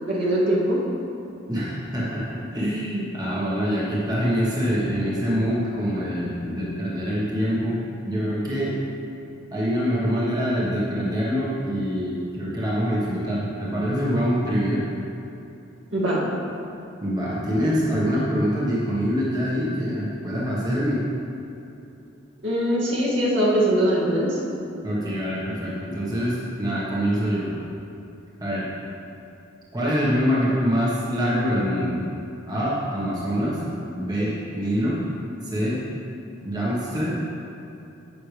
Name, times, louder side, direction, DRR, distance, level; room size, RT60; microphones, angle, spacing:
voice 1, 0.1-0.8 15.9-16.2 22.4-24.4, right 1 dB, 70° right, -7 dB, 2.3 m, -21 dB
voice 2, 1.5-2.2 2.5-7.8 8.0-8.7 9.5-14.9 17.0-21.0 24.8-27.5 28.4-28.7 29.7-32.0 32.5-33.6 33.9-35.0 35.4-35.8 36.4-37.2, equal, 20° right, -7 dB, 1.4 m, -25 dB
11.0 x 8.0 x 3.4 m, 2.7 s
head